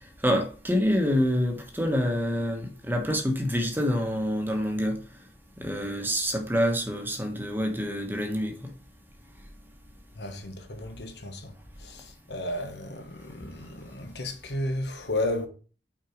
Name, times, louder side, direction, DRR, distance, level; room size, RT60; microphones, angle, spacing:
voice 1, 0.2-5.0 5.6-8.5, equal, 10° right, 1.2 m, -26 dB
voice 2, 10.2-11.5 11.8-15.5, left 1 dB, 65° left, 1.2 m, -33 dB
5.9 x 4.6 x 5.1 m
head